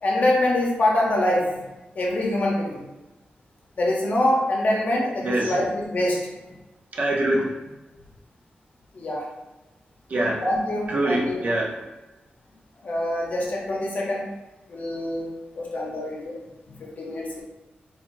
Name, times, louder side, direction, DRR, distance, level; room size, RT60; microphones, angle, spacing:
voice 1, 0.0-1.6 2.0-2.8 3.8-6.2 8.9-9.3 10.4-11.4 12.8-14.2 14.7-15.3 15.6-16.4 16.7-17.4, left 1 dB, 50° left, -2 dB, 0.8 m, -24 dB
voice 2, 5.2-5.6 6.9-7.6 10.1-10.4 10.9-11.8, right 1 dB, 50° right, -2 dB, 0.6 m, -24 dB
4.3 x 2.4 x 2.6 m, 1.1 s
wide cardioid pair, 180°, 3 cm